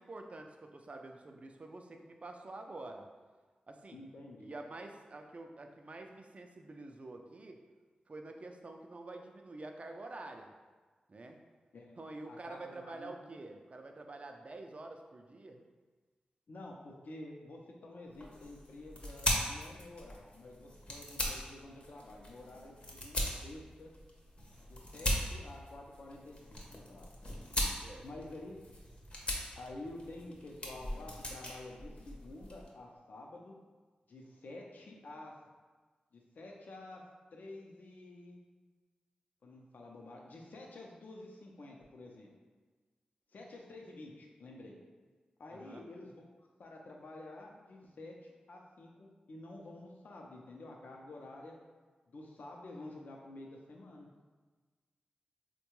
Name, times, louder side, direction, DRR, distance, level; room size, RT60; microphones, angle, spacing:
voice 1, 0.0-3.1 3.7-4.0 4.4-7.6 8.1-10.5 11.1-11.4 12.0-15.6 27.8-28.1 45.5-45.9, right 2 dB, 45° right, 4 dB, 0.4 m, -48 dB
voice 2, 3.9-4.5 11.7-12.0 12.3-13.2 16.5-23.9 24.7-27.1 28.0-28.6 29.6-33.5 34.1-35.3 36.1-37.0 37.3-38.4 39.4-42.3 43.3-44.8 45.4-51.5 52.1-54.1, left 2 dB, 70° left, 0 dB, 0.5 m, -50 dB
sound 1, 18.1-32.7, left 1 dB, 40° left, 0.7 m, -40 dB
3.6 x 2.2 x 3.0 m, 1.4 s
cardioid pair, 50°, 3 cm